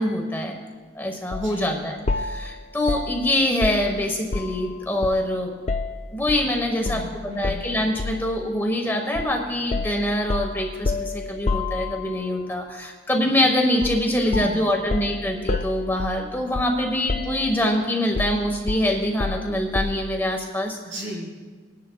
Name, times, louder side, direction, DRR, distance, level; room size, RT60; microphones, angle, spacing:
voice 1, 0.0-5.5 6.1-7.0 7.3-20.8, left 1 dB, 10° left, 2 dB, 1.1 m, -24 dB
sound 1, 1.3-1.5 2.1-4.7 5.0-6.5 6.9-7.1 7.4-8.3 9.2-9.4 9.7-12.3 13.8-14.1 14.3-16.8 17.1-17.7 18.2-20.1, left 3 dB, 35° left, 0.4 m, -29 dB
voice 2, 1.4-1.9 6.7-7.7 14.1-14.7 20.8-21.3, equal, 75° right, -3 dB, 3.7 m, -34 dB
21.0 x 10.5 x 2.3 m, 1.4 s
head